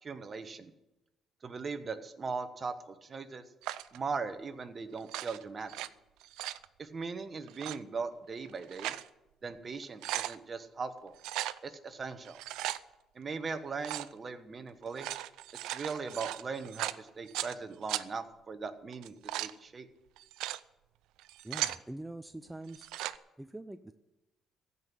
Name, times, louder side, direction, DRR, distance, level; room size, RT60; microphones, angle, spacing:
voice 1, 0.0-0.7 1.4-3.4 3.9-5.9 6.8-8.9 9.4-11.2 11.6-12.4 13.1-15.1 15.6-19.9, right 4 dB, 35° right, 9 dB, 1.2 m, -39 dB
sound 1, 3.6-4.0 5.0-5.9 6.2-6.6 7.5-7.8 8.5-9.1 9.5-9.6 9.8-10.4 11.2-11.6 12.2-12.8 13.8-14.1 14.8-17.5 17.9-18.0 18.9-19.5 20.2-20.6 21.2-21.8 22.7-23.2, right 14 dB, 90° right, 0.5 m, -37 dB
voice 2, 21.4-22.9 23.4-23.9, right 1 dB, 10° right, 9 dB, 0.5 m, -44 dB
15.5 x 5.5 x 9.9 m, 0.98 s
cardioid pair, 100°, 0 cm